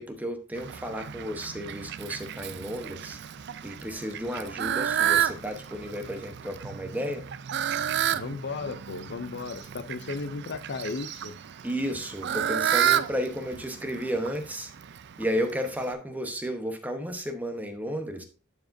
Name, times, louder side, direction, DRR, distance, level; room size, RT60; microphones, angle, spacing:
voice 1, 0.0-3.2 3.6-7.3 11.6-14.7 15.2-18.2, equal, 10° right, 0.9 m, -33 dB
Fowl, 0.5-15.9, right 10 dB, 55° right, 0.4 m, -31 dB
voice 2, 8.1-11.4, left 4 dB, 55° left, 0.5 m, -35 dB
11.5 x 4.8 x 2.6 m
head